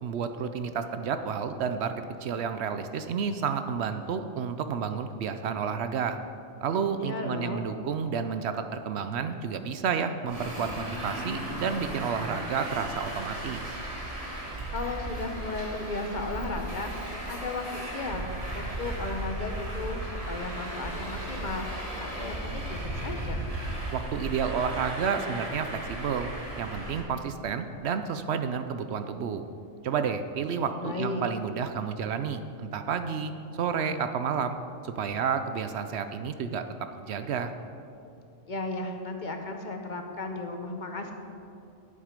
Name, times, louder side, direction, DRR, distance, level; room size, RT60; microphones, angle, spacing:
voice 1, 0.0-6.2 6.6-13.8 23.9-26.3 26.6-29.5 29.8-33.3 33.6-34.6 34.8-36.7 37.0-37.5, right 6 dB, 70° right, 9 dB, 0.8 m, -30 dB
voice 2, 7.0-7.7 14.7-18.3 18.5-23.4 30.8-31.3 38.5-41.1, left 2 dB, 45° left, 4 dB, 0.9 m, -35 dB
Traffic noise roadway noise, 10.3-27.0, right 1 dB, 30° right, 1.6 m, -36 dB
10.5 x 8.1 x 5.1 m, 2.6 s
omnidirectional pair, 1.2 m